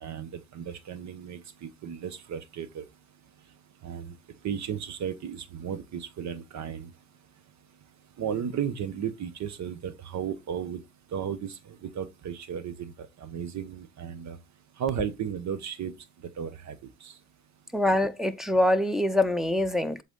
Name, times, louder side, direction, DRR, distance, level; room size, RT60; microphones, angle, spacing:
voice 1, 0.0-2.8 3.8-4.2 4.4-6.9 8.2-10.8 11.1-14.4 14.8-15.9 16.4-16.8 17.0-17.1, right 8 dB, 65° right, 1.1 m, -34 dB
voice 2, 17.7-20.0, left 1 dB, ahead, 0.7 m, -24 dB
7.9 x 4.0 x 3.8 m
cardioid pair, 90°, 30 cm